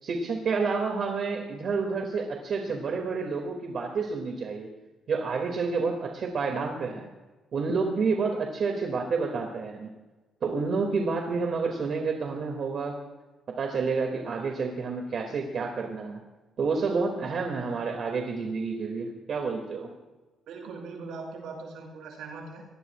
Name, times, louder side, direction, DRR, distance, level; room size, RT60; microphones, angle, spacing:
voice 1, 0.0-4.7 5.1-7.1 7.5-9.9 10.4-13.0 13.6-16.2 16.6-19.9, right 4 dB, 60° right, 1 dB, 2.5 m, -29 dB
voice 2, 20.5-22.7, right 4 dB, 85° right, -1 dB, 6.8 m, -40 dB
24.5 x 20.0 x 2.5 m, 1.2 s
cardioid pair, 90°, 0 cm